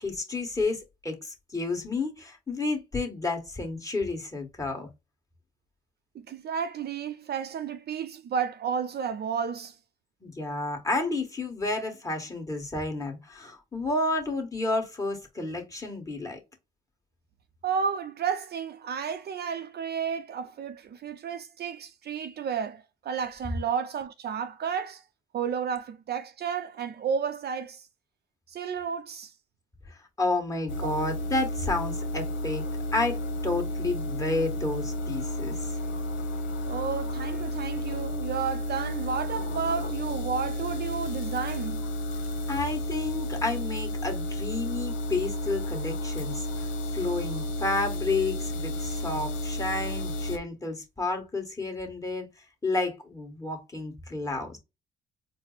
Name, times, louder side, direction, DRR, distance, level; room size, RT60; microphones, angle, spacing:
voice 1, 0.0-4.9 10.2-16.4 30.2-32.6 32.9-35.7 42.5-46.5 46.9-52.3 52.6-54.6, left 2 dB, 15° left, 1.5 m, -31 dB
voice 2, 6.1-9.7 17.6-25.0 25.3-27.9 28.5-29.3 36.6-41.8, right 7 dB, 55° right, 0.5 m, -32 dB
sound 1, 30.7-50.4, left 1 dB, 70° left, 1.0 m, -32 dB
4.4 x 2.0 x 3.9 m
cardioid pair, 90°, 20 cm